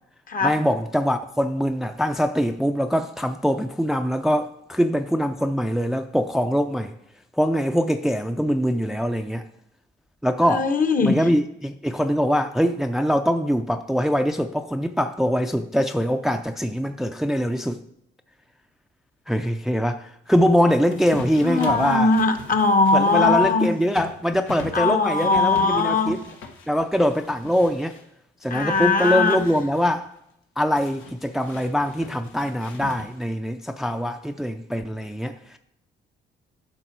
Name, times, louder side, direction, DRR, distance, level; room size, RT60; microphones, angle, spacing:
voice 1, 0.4-6.9 7.4-9.4 10.2-10.7 11.0-17.8 19.3-22.1 22.9-26.2 26.7-28.0 28.4-30.1 30.6-35.6, equal, ahead, 0.5 m, -23 dB
voice 2, 10.5-11.3 21.4-23.7 24.7-26.2 28.5-29.5, left 3 dB, 45° left, 1.0 m, -20 dB
sound 1, 20.9-28.0 28.4-30.0 30.8-33.3, left 5 dB, 90° left, 1.4 m, -40 dB
11.0 x 5.8 x 4.6 m
cardioid pair, 90°, 20 cm